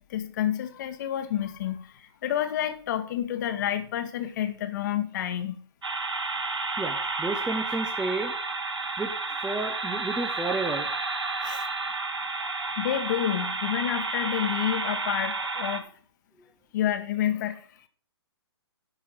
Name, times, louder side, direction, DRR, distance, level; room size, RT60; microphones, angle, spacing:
voice 1, 0.0-5.6 11.4-11.7 12.8-15.8 16.7-17.7, left 11 dB, 45° left, 9 dB, 1.5 m, -29 dB
sound 1, 5.8-15.8, right 3 dB, 90° right, 2.0 m, -31 dB
voice 2, 6.8-8.3 9.0-10.9 12.4-12.7 13.4-13.5, right 3 dB, 5° right, 6 dB, 0.8 m, -32 dB
11.0 x 5.8 x 7.1 m, 0.43 s
hypercardioid pair, 140°, 14 cm